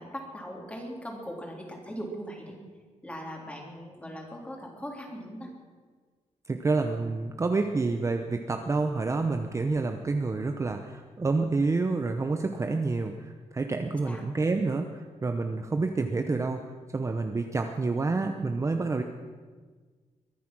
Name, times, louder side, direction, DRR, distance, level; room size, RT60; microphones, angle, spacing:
voice 1, 0.0-2.6 3.0-5.5 14.0-14.2, equal, 10° left, 0 dB, 3.4 m, -39 dB
voice 2, 6.5-16.6 16.9-19.0, right 3 dB, 25° right, 5 dB, 0.8 m, -28 dB
22.5 x 10.0 x 6.1 m, 1.5 s
wide cardioid pair, 135°, 12 cm